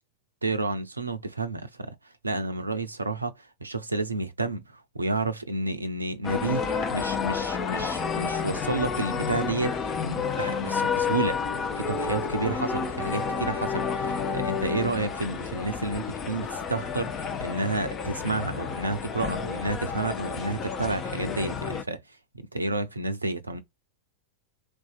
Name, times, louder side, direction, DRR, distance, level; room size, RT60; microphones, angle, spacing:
voice 1, 0.4-11.4 11.7-22.2 22.5-23.6, right 3 dB, 80° right, 0.4 m, -30 dB
sound 1, 6.2-21.8, left 6 dB, 30° left, 0.5 m, -30 dB
2.6 x 2.2 x 2.3 m
figure-of-eight pair, 90°, 0 cm